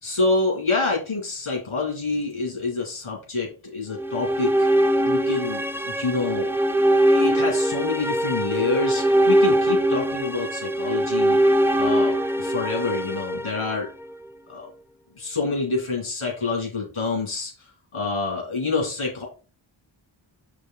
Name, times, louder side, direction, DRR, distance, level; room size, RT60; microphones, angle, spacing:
voice 1, 0.0-4.7 5.0-6.5 7.0-11.4 11.7-13.9 14.5-14.7 15.2-19.2, left 3 dB, 85° left, -2 dB, 2.4 m, -27 dB
sound 1, 3.9-14.2, right 1 dB, 5° right, 0.4 m, -22 dB
6.5 x 5.1 x 3.8 m, 0.34 s
wide cardioid pair, 50°, 49 cm